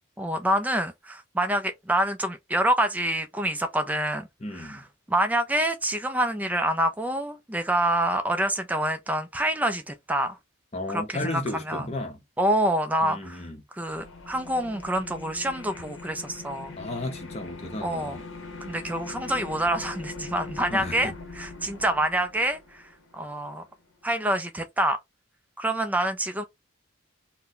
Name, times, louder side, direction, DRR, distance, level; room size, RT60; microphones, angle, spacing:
voice 1, 0.2-4.3 4.5-4.8 5.1-10.4 10.9-11.9 12.4-13.4 13.7-16.8 17.8-18.2 18.7-22.8 23.1-23.6 24.0-25.0 25.6-26.4, right 1 dB, 5° right, 0.4 m, -27 dB
voice 2, 4.4-4.8 10.7-12.2 13.0-13.6 16.8-18.2 20.7-21.1, left 2 dB, 30° left, 0.7 m, -34 dB
sound 1, 13.9-23.8, left 3 dB, 65° left, 0.8 m, -42 dB
2.7 x 2.1 x 3.8 m
head